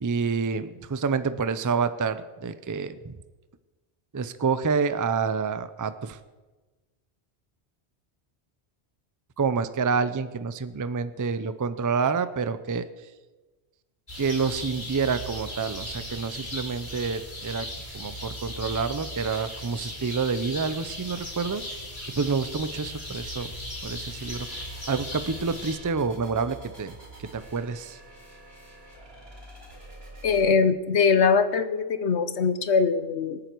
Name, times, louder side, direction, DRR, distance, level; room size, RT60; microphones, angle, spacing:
voice 1, 0.0-3.1 4.1-6.2 9.4-12.9 14.2-17.7 17.9-21.6 22.2-23.5 23.8-26.9 27.2-28.0, right 5 dB, 25° right, 12 dB, 0.4 m, -28 dB
sound 1, 14.1-25.8, left 1 dB, 45° left, 3.3 m, -37 dB
sound 2, 24.3-30.5, right 2 dB, 65° right, 3.9 m, -47 dB
voice 2, 30.2-33.4, left 5 dB, 90° left, 11 dB, 1.2 m, -22 dB
26.0 x 9.0 x 4.6 m, 1.2 s
omnidirectional pair, 1.1 m